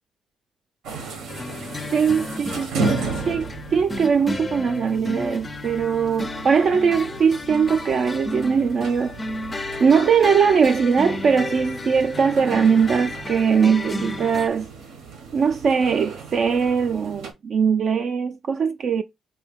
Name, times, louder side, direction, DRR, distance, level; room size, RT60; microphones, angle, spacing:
closing elevator doors moving elevator, 0.8-17.3, right 4 dB, 80° right, 0.8 m, -35 dB
sound 1, 1.3-14.5, left 2 dB, 25° left, 0.4 m, -33 dB
voice 1, 1.9-9.2 9.8-14.7 15.3-19.0, right 6 dB, 55° right, 0.3 m, -20 dB
3.5 x 2.2 x 3.4 m
cardioid pair, 90°, 0 cm